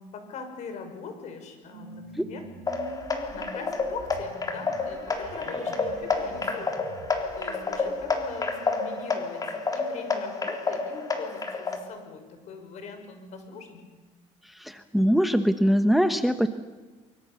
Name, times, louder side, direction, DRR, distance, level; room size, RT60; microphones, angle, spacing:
voice 1, 0.0-2.4 3.3-6.9 7.4-9.4 9.7-13.8, left 5 dB, 60° left, 6 dB, 5.9 m, -41 dB
sound 1, 1.7-10.4, right 5 dB, 60° right, 4.1 m, -47 dB
sound 2, 2.7-11.8, left 4 dB, 30° left, 3.7 m, -30 dB
voice 2, 14.5-16.5, equal, ahead, 9 dB, 1.2 m, -22 dB
24.5 x 24.5 x 7.1 m, 1.3 s
cardioid pair, 115°, 13 cm